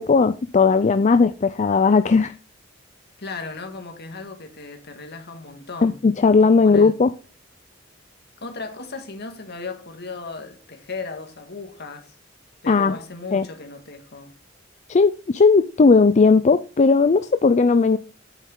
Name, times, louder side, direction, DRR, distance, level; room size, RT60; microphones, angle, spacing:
voice 1, 0.0-2.3 5.8-7.1 12.7-13.0 13.3-13.5 14.9-18.0, left 4 dB, 35° left, 0.4 m, -17 dB
voice 2, 3.2-6.0 6.6-7.0 8.4-12.2 12.6-14.3, left 3 dB, 55° left, 1.9 m, -36 dB
9.1 x 7.5 x 3.8 m
head